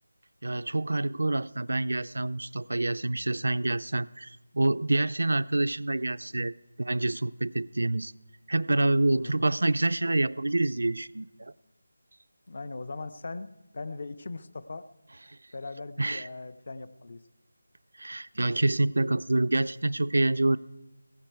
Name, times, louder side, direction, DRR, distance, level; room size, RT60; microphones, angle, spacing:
voice 1, 0.4-8.1 8.5-11.5 16.0-16.3 18.0-20.6, right 2 dB, 80° right, 15 dB, 0.4 m, -27 dB
voice 2, 9.1-9.5 12.5-14.9 15.5-17.2, left 3 dB, 45° left, 15 dB, 0.6 m, -39 dB
16.0 x 15.5 x 4.6 m, 1.0 s
figure-of-eight pair, 175°, 0 cm